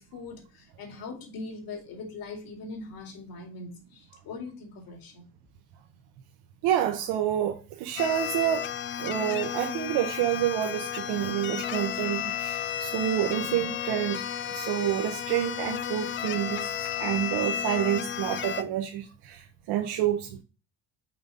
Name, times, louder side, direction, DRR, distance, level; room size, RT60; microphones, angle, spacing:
voice 1, 0.0-5.2, left 3 dB, 55° left, 2.4 m, -41 dB
voice 2, 6.6-8.7 9.0-14.2 14.5-16.7 17.0-20.4, right 11 dB, 70° right, 1.0 m, -28 dB
sound 1, 8.0-18.6, left 9 dB, 30° left, 0.4 m, -33 dB
5.9 x 4.0 x 5.0 m
cardioid pair, 130°, 42 cm